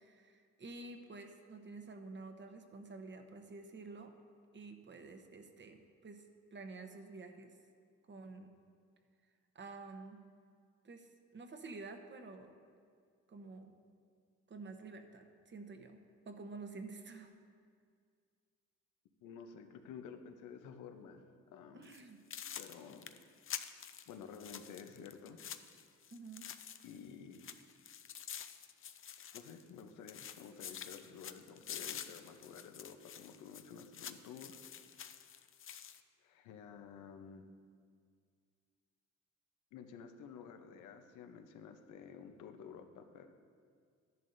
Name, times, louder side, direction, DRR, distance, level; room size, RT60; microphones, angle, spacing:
voice 1, 0.0-4.1 4.5-6.2 6.5-7.5 8.1-8.5 9.5-10.2 10.8-12.5 13.3-13.7 14.5-16.0 16.3-17.3 21.7-22.2 26.1-26.5, right 3 dB, 40° right, 6 dB, 1.0 m, -50 dB
voice 2, 19.2-21.9 22.6-23.2 24.1-25.4 26.8-27.5 29.3-34.6 36.2-37.5 39.7-43.3, left 7 dB, 90° left, 7 dB, 0.8 m, -52 dB
sound 1, 21.8-22.0 22.3-27.1 27.3-29.8 30.1-36.0, left 8 dB, 45° left, 0.6 m, -48 dB
12.5 x 11.0 x 2.7 m, 2.1 s
cardioid pair, 90°, 30 cm